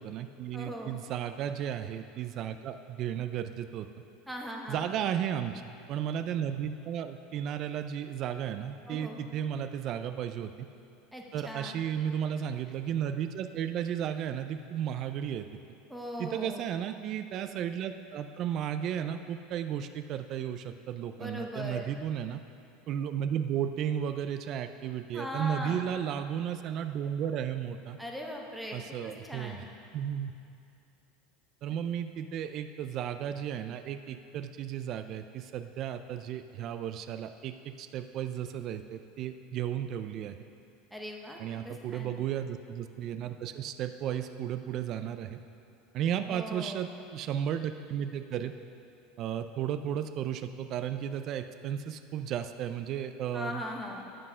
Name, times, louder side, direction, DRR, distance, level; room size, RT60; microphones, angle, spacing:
voice 1, 0.0-3.9 4.7-10.7 11.3-15.5 16.2-22.4 22.9-28.0 28.7-29.6 29.9-30.3 31.6-40.4 41.4-45.4 45.9-48.5 49.2-53.6, right 9 dB, 35° right, 9 dB, 0.3 m, -34 dB
voice 2, 0.5-1.0 4.3-4.9 8.9-9.2 11.1-11.8 15.9-16.7 21.2-21.9 25.1-25.8 28.0-29.7 40.9-42.1 46.3-46.8 53.3-54.1, equal, ahead, -1 dB, 0.8 m, -39 dB
9.6 x 7.6 x 5.5 m, 2.6 s
supercardioid pair, 170°, 0 cm